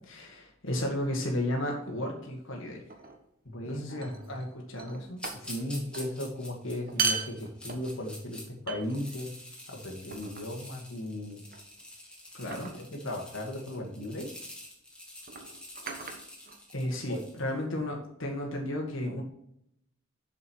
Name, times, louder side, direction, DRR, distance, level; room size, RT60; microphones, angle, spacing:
voice 1, 0.1-2.8 3.6-5.2 12.4-12.7 16.7-19.2, left 1 dB, 65° left, 0 dB, 1.7 m, -33 dB
sound 1, 2.9-3.2 4.0-4.5 4.8-5.7 5.9-6.1 6.8-8.1 8.7-9.3 10.1-10.6 11.5-11.8 12.5-12.9 14.1-14.3 15.2-17.0, right 5 dB, 45° right, 1.3 m, -36 dB
voice 2, 3.5-4.3 5.4-9.3 9.7-11.4 12.7-14.3 17.1-17.2, left 1 dB, 85° left, 0 dB, 1.9 m, -36 dB
sound 2, 5.2-8.4 8.8-17.5, left 1 dB, 5° left, 2.2 m, -47 dB
7.3 x 6.5 x 4.6 m, 0.75 s
head